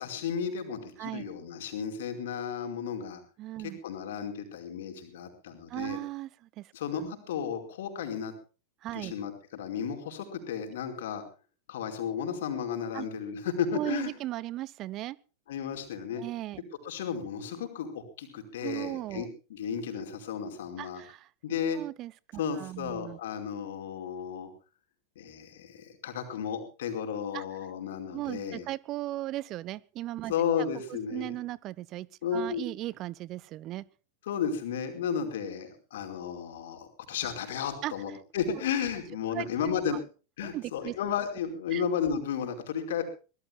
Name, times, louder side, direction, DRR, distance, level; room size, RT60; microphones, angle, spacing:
voice 1, 0.0-3.2 3.8-6.0 6.7-8.3 8.9-11.2 11.7-14.1 15.5-16.2 16.8-21.0 21.4-21.8 22.4-24.5 25.1-28.7 30.3-31.4 32.2-32.6 34.3-40.0 40.4-43.0, left 7 dB, 55° left, 5 dB, 4.9 m, -33 dB
voice 2, 3.4-3.8 5.7-6.7 7.0-7.1 8.8-9.1 12.9-13.1 13.7-15.2 16.2-16.6 18.6-19.3 20.8-21.3 21.7-22.1 22.6-23.2 27.3-27.4 28.1-30.3 30.9-33.8 37.8-37.9 39.3-39.5 39.9-40.0 40.4-40.9 41.7-41.8, right 15 dB, 35° right, 22 dB, 0.7 m, -37 dB
24.0 x 19.5 x 2.3 m, 0.35 s
figure-of-eight pair, 90°, 0 cm